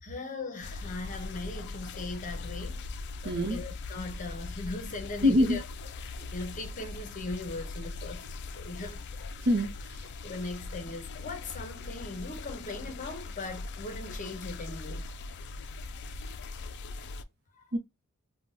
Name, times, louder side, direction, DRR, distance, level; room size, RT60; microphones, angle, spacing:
voice 1, 0.0-3.0 3.2-5.6 6.0-9.0 10.2-15.1 17.5-17.6, left 2 dB, 35° left, 0.8 m, -39 dB
sound 1, 0.6-17.2, left 3 dB, 50° left, 0.4 m, -40 dB
voice 2, 3.2-3.6 5.2-5.6 6.2-6.3 9.4-10.0 17.7-17.8, left 1 dB, 50° right, 0.7 m, -25 dB
3.7 x 2.2 x 2.4 m
head